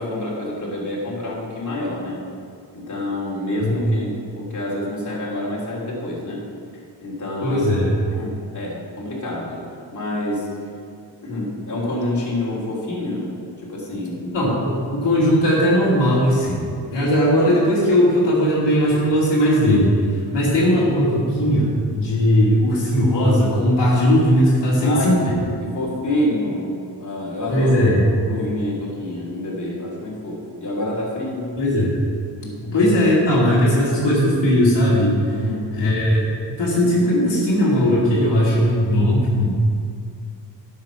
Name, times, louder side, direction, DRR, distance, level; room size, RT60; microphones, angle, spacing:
voice 1, 0.0-2.2 2.7-6.4 7.0-7.8 8.1-9.6 9.9-10.5 11.2-13.3 13.6-14.5 20.4-20.6 24.8-25.1 25.6-31.6 32.4-32.5 35.3-35.7, left 1 dB, 40° left, -5 dB, 3.2 m, -27 dB
voice 2, 7.4-7.9 14.3-19.9 20.3-25.3 27.5-28.0 31.6-31.9 32.6-35.2 35.7-36.3 36.6-39.5, equal, 65° left, -6 dB, 2.7 m, -18 dB
11.0 x 7.4 x 5.8 m, 2.3 s
cardioid pair, 105°, 45 cm